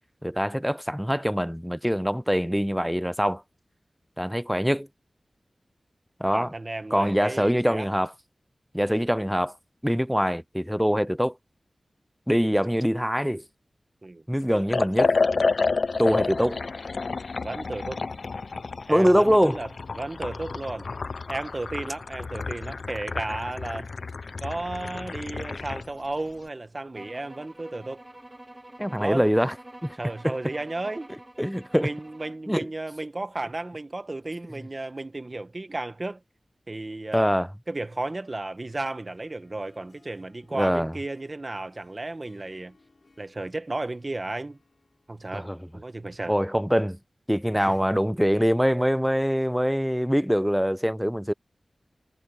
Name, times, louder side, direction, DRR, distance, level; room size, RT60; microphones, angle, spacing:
voice 1, 0.2-3.4 4.2-4.9 6.2-6.5 6.9-8.1 8.7-9.5 9.8-11.3 12.3-13.4 14.3-15.2 16.0-16.6 18.9-19.6 28.8-29.5 29.8-29.9 30.2-30.4 31.4-31.9 32.5-32.7 37.1-37.5 40.5-40.9 45.3-45.6 46.3-47.0 47.3-51.3, equal, ahead, 0.6 m, -23 dB
voice 2, 6.3-7.9 14.0-14.2 17.4-18.0 18.9-19.7 19.9-20.9 21.3-23.9 24.4-28.0 29.0-29.3 29.9-31.1 31.8-36.2 36.7-37.3 37.7-42.7 43.2-44.6 45.1-45.5 45.7-46.4 47.5-47.7, right 2 dB, 40° right, 1.3 m, -34 dB
Liquid, 14.7-25.9, left 4 dB, 75° left, 0.5 m, -30 dB
sound 1, 26.9-32.5, right 1 dB, 20° right, 1.8 m, -47 dB
Harp, 38.0-46.7, left 3 dB, 60° left, 6.2 m, -63 dB
wide cardioid pair, 70°, 0 cm